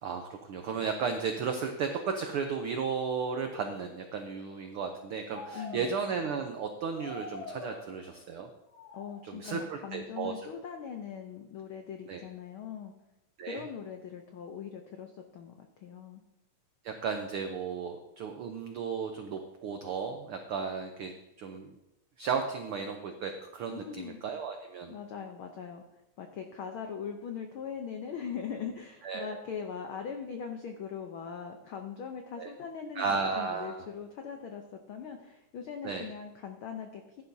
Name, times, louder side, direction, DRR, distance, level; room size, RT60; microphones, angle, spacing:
voice 1, 0.0-8.5 9.3-10.3 12.1-12.2 13.4-13.6 16.8-21.1 21.4-21.7 22.2-24.9 29.0-29.4 32.4-32.5 33.0-33.8 35.8-36.1, right 5 dB, 85° right, 5 dB, 1.2 m, -34 dB
sound 1, 3.3-4.4 5.3-6.4 6.9-8.3 8.7-9.3, left 3 dB, 55° left, 5.1 m, -46 dB
voice 2, 5.5-6.0 8.9-12.9 13.4-16.2 23.7-24.2 24.9-25.8 26.2-37.2, left 7 dB, 80° left, 4 dB, 1.1 m, -41 dB
15.5 x 10.5 x 2.7 m, 0.95 s
omnidirectional pair, 3.4 m